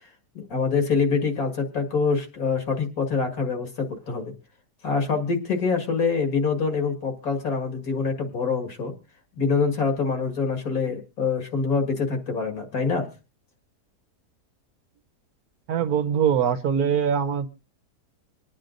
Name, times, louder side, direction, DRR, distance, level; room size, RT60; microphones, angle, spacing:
voice 1, 0.3-4.3 4.8-8.9 9.4-13.1, left 5 dB, 65° left, 2.3 m, -25 dB
voice 2, 15.7-17.5, right 8 dB, 70° right, 1.3 m, -22 dB
26.0 x 9.5 x 2.5 m
omnidirectional pair, 1.7 m